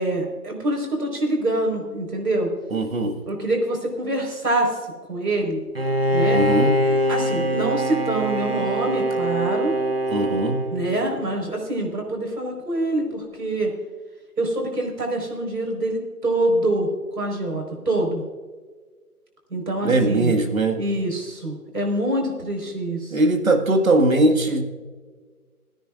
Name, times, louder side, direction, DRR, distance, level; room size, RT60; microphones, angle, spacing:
voice 1, 0.0-2.5 3.3-4.8 5.1-5.6 6.1-6.4 7.1-9.7 10.7-13.7 14.4-18.2 19.5-20.3 20.8-23.2, right 1 dB, 85° right, 1 dB, 4.8 m, -25 dB
voice 2, 2.7-3.2 6.3-6.8 10.1-10.7 19.8-20.8 23.1-24.6, right 2 dB, 60° right, 5 dB, 1.9 m, -20 dB
Bowed string instrument, 5.7-11.3, right 1 dB, 40° right, 0.9 m, -23 dB
30.0 x 10.0 x 2.5 m, 1.5 s
hypercardioid pair, 180°, 46 cm